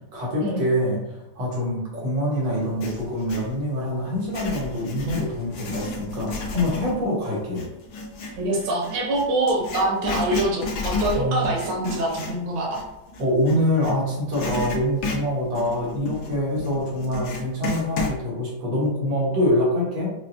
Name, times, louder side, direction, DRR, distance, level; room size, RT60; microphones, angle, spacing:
voice 1, 0.1-7.6 11.1-11.5 13.2-20.1, left 1 dB, 90° right, -5 dB, 2.2 m, -25 dB
Writing, 2.5-3.5 4.1-14.0 14.3-18.2, left 3 dB, 80° left, 1.6 m, -32 dB
voice 2, 8.4-12.8, right 1 dB, 65° right, -1 dB, 1.5 m, -24 dB
5.7 x 2.2 x 2.6 m, 0.93 s
omnidirectional pair, 2.1 m